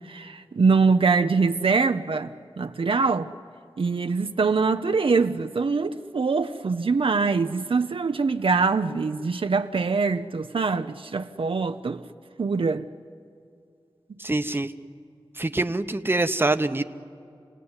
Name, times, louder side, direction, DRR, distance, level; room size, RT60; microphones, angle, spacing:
voice 1, 0.0-3.3 3.8-12.0 12.4-12.9, right 4 dB, 70° right, 0.7 m, -23 dB
voice 2, 14.2-14.7 15.4-16.8, right 2 dB, 25° right, 0.9 m, -24 dB
28.5 x 18.0 x 9.7 m
wide cardioid pair, 70°, 10 cm